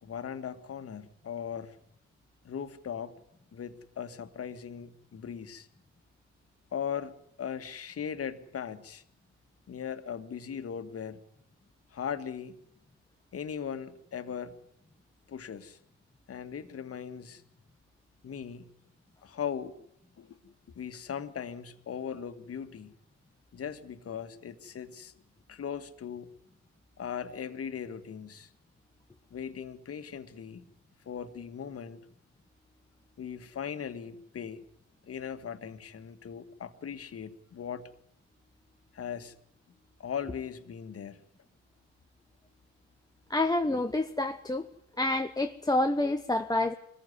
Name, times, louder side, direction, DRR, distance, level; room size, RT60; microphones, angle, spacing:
voice 1, 0.0-1.8 2.4-3.2 3.5-5.7 6.7-9.0 9.7-11.2 11.9-12.6 13.3-14.6 15.3-15.8 16.3-17.4 18.2-18.7 19.2-19.8 20.2-22.9 23.5-25.1 25.5-26.3 27.0-28.5 29.3-30.7 31.1-32.1 33.2-34.6 35.0-37.9 38.9-39.4 40.0-41.2, left 7 dB, 40° left, 10 dB, 2.0 m, -39 dB
voice 2, 43.3-44.7 45.0-46.7, left 2 dB, 10° left, 6 dB, 1.1 m, -28 dB
23.0 x 15.0 x 9.9 m, 0.74 s
hypercardioid pair, 60°, 35 cm